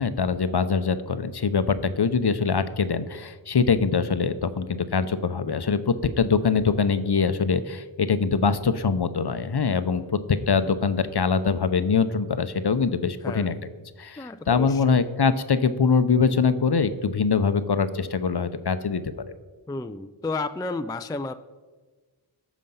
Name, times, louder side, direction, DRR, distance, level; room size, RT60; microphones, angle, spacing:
voice 1, 0.0-13.6 14.0-19.0, left 5 dB, 50° left, 12 dB, 0.7 m, -23 dB
voice 2, 13.2-13.6 14.2-15.0 19.7-21.3, left 3 dB, 10° left, 11 dB, 0.3 m, -32 dB
13.0 x 5.1 x 5.5 m, 1.4 s
wide cardioid pair, 50°, 50 cm